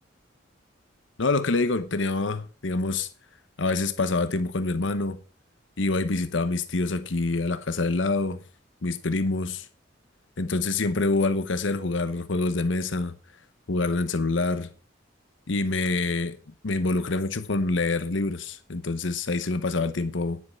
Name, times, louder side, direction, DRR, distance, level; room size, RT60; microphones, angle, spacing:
voice 1, 1.2-3.1 3.6-5.2 5.8-8.4 8.8-9.7 10.4-13.2 13.7-14.7 15.5-16.4 16.6-20.4, left 3 dB, 80° left, 0.9 m, -26 dB
10.0 x 8.3 x 5.7 m
head